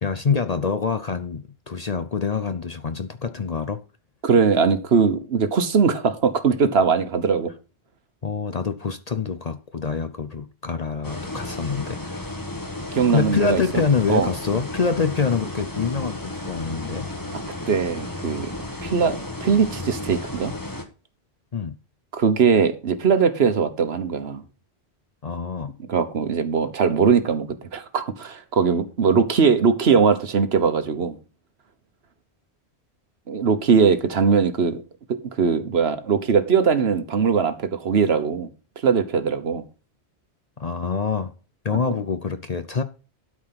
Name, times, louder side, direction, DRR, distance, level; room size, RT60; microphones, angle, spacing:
voice 1, 0.0-3.8 8.2-12.2 13.1-17.1 21.5-21.7 25.2-25.7 40.6-41.3 41.6-42.8, left 5 dB, 45° left, 0.7 m, -25 dB
voice 2, 4.2-7.5 12.9-13.8 14.1-14.3 17.7-18.5 18.8-20.5 22.1-24.4 25.9-31.2 33.3-34.8 35.1-38.5 38.8-39.6, right 6 dB, 65° right, 1.3 m, -20 dB
sound 1, 11.0-20.8, left 2 dB, 20° left, 1.4 m, -33 dB
12.5 x 4.9 x 5.8 m
omnidirectional pair, 1.2 m